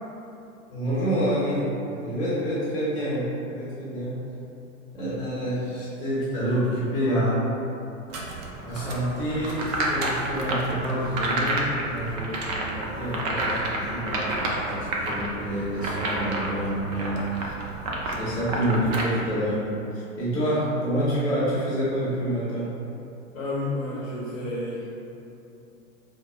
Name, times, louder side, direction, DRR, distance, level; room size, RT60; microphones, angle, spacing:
voice 1, 0.7-1.6 2.0-4.2 4.9-7.4 8.6-17.3 18.0-19.7 19.9-22.7, equal, 10° left, -10 dB, 0.9 m, -27 dB
sound 1, 8.1-19.0, right 1 dB, 30° right, 0.5 m, -30 dB
voice 2, 23.3-24.9, left 1 dB, 75° left, -5 dB, 0.9 m, -31 dB
4.7 x 2.1 x 3.5 m, 2.8 s
figure-of-eight pair, 95°, 42 cm